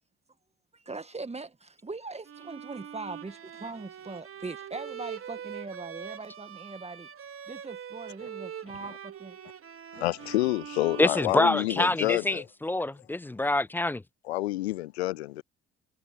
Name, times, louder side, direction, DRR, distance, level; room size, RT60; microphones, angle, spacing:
voice 1, 0.7-7.1 7.5-9.4 10.0-10.1 12.2-12.4, right 3 dB, 20° right, 2.0 m, -41 dB
Bowed string instrument, 2.2-12.0, right 8 dB, 40° right, 3.3 m, -43 dB
voice 2, 9.9-12.5 14.2-15.4, left 17 dB, 75° left, 0.5 m, -28 dB
voice 3, 11.0-14.0, left 2 dB, 5° left, 0.4 m, -26 dB
figure-of-eight pair, 50°, 32 cm